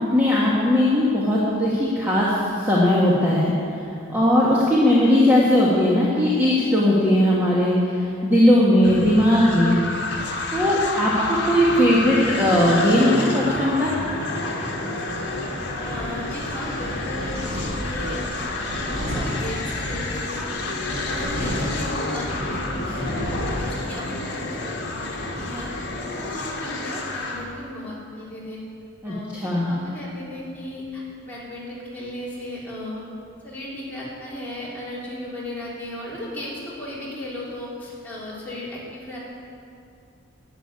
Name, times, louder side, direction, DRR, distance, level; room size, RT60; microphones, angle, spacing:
voice 1, 0.1-9.8 10.5-13.9 29.0-29.7, left 1 dB, 10° right, -7 dB, 1.5 m, -19 dB
sound 1, 8.8-27.5, left 2 dB, 55° left, 1.6 m, -29 dB
Wind, 15.1-26.6, equal, 65° right, 4.0 m, -34 dB
voice 2, 15.7-20.4 20.9-24.5 24.9-25.7 26.1-28.6 29.0-33.1 33.4-39.2, left 1 dB, 10° left, -8 dB, 3.2 m, -36 dB
11.5 x 7.7 x 9.8 m, 2.6 s
head